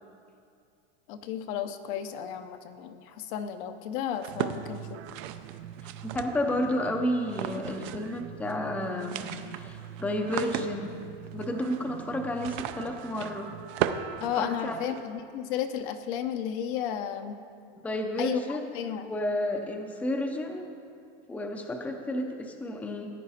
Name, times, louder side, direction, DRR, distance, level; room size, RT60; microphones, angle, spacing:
voice 1, 1.1-5.0 14.2-17.3 18.2-19.1, left 9 dB, 55° left, 8 dB, 0.8 m, -33 dB
sound 1, 4.2-6.7 7.3-8.2 8.4-8.5 8.8-15.0, right 10 dB, 40° right, 0.5 m, -36 dB
sound 2, 4.3-14.9, right 10 dB, 80° right, 0.7 m, -44 dB
voice 2, 5.8-9.3 9.5-10.9 11.3-13.5 14.4-15.0 17.8-18.6 19.0-20.7 21.3-23.1, left 1 dB, 5° left, 3 dB, 0.6 m, -31 dB
15.0 x 9.3 x 4.2 m, 2.4 s
supercardioid pair, 155°, 31 cm